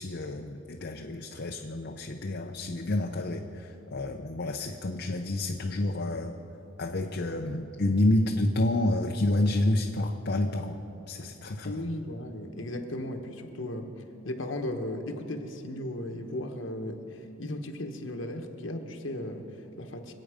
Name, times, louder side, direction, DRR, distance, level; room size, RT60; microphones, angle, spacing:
voice 1, 0.0-6.3 6.8-10.8 11.1-11.8, left 1 dB, 55° left, 2 dB, 0.7 m, -29 dB
voice 2, 11.6-13.9 14.2-20.1, left 1 dB, 70° left, 4 dB, 1.3 m, -36 dB
25.5 x 8.7 x 5.1 m, 2.9 s
head